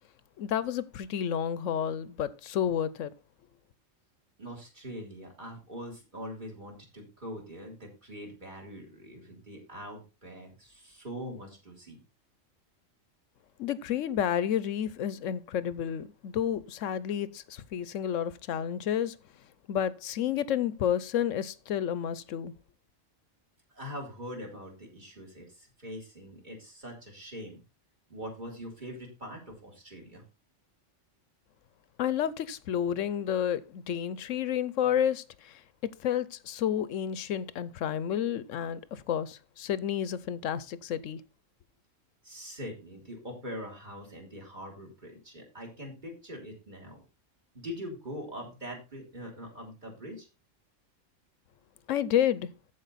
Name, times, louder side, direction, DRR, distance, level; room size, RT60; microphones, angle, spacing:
voice 1, 0.4-3.1 13.6-19.2 19.7-22.5 32.0-35.6 36.0-41.2 51.9-52.5, left 9 dB, 75° left, 1.0 m, -30 dB
voice 2, 4.4-12.0 23.7-27.6 28.1-30.2 42.2-47.0 47.5-50.3, equal, 35° right, 3.4 m, -43 dB
14.5 x 4.9 x 4.1 m
omnidirectional pair, 1.3 m